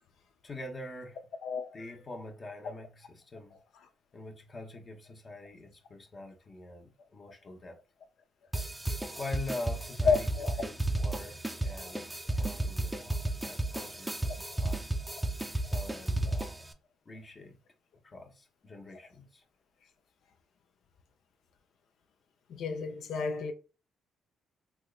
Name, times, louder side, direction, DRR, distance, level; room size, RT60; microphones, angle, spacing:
voice 1, 0.4-1.3 1.7-3.6 4.1-7.8 9.2-14.9 15.7-16.5 17.1-17.6 18.0-19.4, left 2 dB, 35° left, 0.8 m, -44 dB
voice 2, 1.4-1.8 10.1-10.5 22.5-23.5, left 5 dB, 70° left, 0.6 m, -30 dB
sound 1, 8.5-16.7, right 2 dB, 10° right, 0.5 m, -33 dB
3.4 x 3.1 x 2.3 m
cardioid pair, 90°, 0 cm